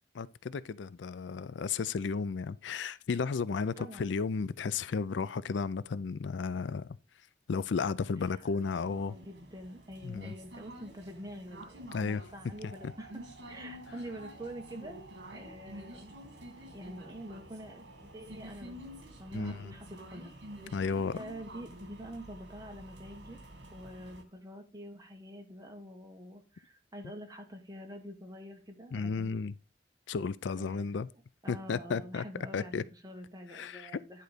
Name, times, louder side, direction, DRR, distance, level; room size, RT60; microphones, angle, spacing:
voice 1, 0.1-6.9 7.5-9.1 10.0-10.3 11.9-12.2 12.6-12.7 19.3-19.7 20.7-21.2 28.9-29.5 30.1-31.1 31.5-32.2 32.5-32.8 33.5-33.9, left 5 dB, 80° left, 0.4 m, -33 dB
voice 2, 3.8-4.1 8.2-8.6 8.9-15.0 15.3-16.2 16.7-18.8 19.2-20.3 20.7-23.4 23.7-29.4 30.6-34.2, equal, 20° right, 1.5 m, -46 dB
sound 1, 8.6-24.2, right 1 dB, 75° right, 1.9 m, -49 dB
10.5 x 4.0 x 5.0 m
head